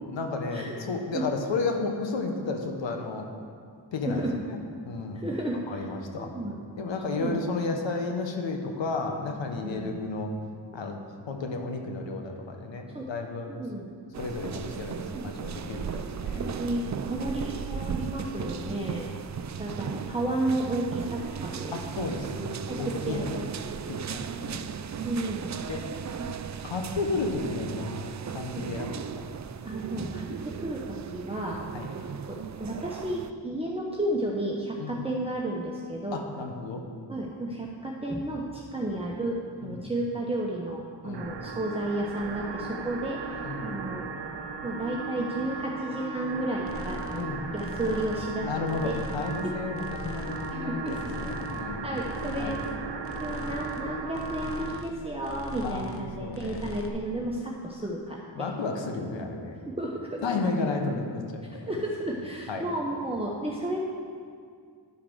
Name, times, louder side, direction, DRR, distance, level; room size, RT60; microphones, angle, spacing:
voice 1, 0.1-3.2 3.9-4.6 4.8-5.2 5.7-6.3 6.8-10.3 10.7-11.0 11.3-13.5 14.2-16.4 21.7-23.5 23.9-24.6 25.7-25.8 26.6-29.2 31.7-31.9 34.8-35.0 36.1-36.8 39.6-39.9 41.0-41.3 43.4-43.7 47.1-47.5 48.4-51.9 52.4-52.6 55.6-55.8 56.2-56.6 58.3-59.6 60.2-61.7 62.5-62.6, left 3 dB, 85° left, 3 dB, 1.2 m, -32 dB
voice 2, 5.1-5.9 6.2-6.6 7.1-7.4 9.6-10.0 12.9-13.1 13.5-13.9 15.1-15.2 15.6-15.9 16.3-19.1 19.6-21.8 22.1-22.2 22.7-23.5 25.0-25.5 27.0-27.1 28.5-28.7 29.6-31.6 32.3-36.2 37.1-44.1 44.6-47.3 47.5-49.0 49.4-49.5 50.5-51.0 51.8-52.6 53.2-58.5 59.7-60.2 61.5-63.8, right 1 dB, 15° right, -3 dB, 1.1 m, -32 dB
sound 1, 14.1-33.3, right 7 dB, 40° right, 0.5 m, -36 dB
sound 2, 41.1-54.9, right 4 dB, 70° right, 0.9 m, -37 dB
sound 3, 46.7-47.2 47.5-48.4 48.6-49.5 49.7-50.6 50.8-51.6 51.9-52.8 53.0-53.8 54.1-55.0 55.2-56.1 56.3-56.9, left 1 dB, 30° left, 1.1 m, -40 dB
11.5 x 5.0 x 6.3 m, 2.2 s
cardioid pair, 60°, 44 cm